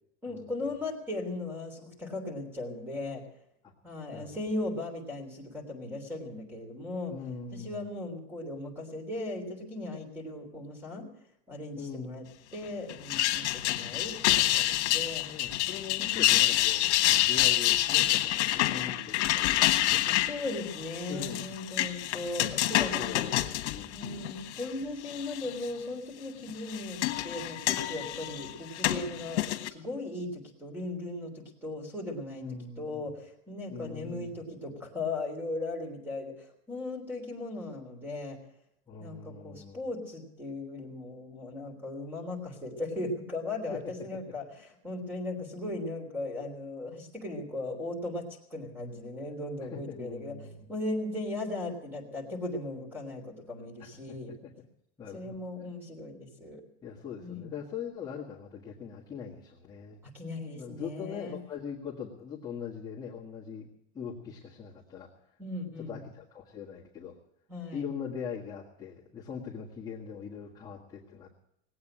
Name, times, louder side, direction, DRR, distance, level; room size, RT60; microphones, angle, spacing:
voice 1, 0.2-3.2 3.8-7.1 7.5-11.1 11.5-12.2 12.5-15.3 16.0-16.3 20.3-23.2 23.9-32.4 32.8-38.4 39.0-54.3 55.1-56.6 57.2-57.6 60.0-61.4 65.4-66.0 67.5-67.9, left 2 dB, 5° right, 4 dB, 3.4 m, -37 dB
voice 2, 7.1-7.8 11.7-12.2 13.6-14.0 15.2-20.2 21.1-21.5 22.9-24.1 32.3-33.0 33.7-34.3 38.9-39.8 43.7-44.0 49.7-50.7 53.8-54.2 54.4-54.5 55.0-55.3 56.8-60.0 60.5-63.7 63.9-65.1 65.8-67.1 67.7-71.3, left 7 dB, 10° left, -6 dB, 1.6 m, -41 dB
sound 1, 12.9-24.7 25.1-25.7 26.5-29.7, left 15 dB, 75° left, 1.5 m, -28 dB
19.0 x 8.7 x 8.8 m, 0.77 s
supercardioid pair, 170°, 34 cm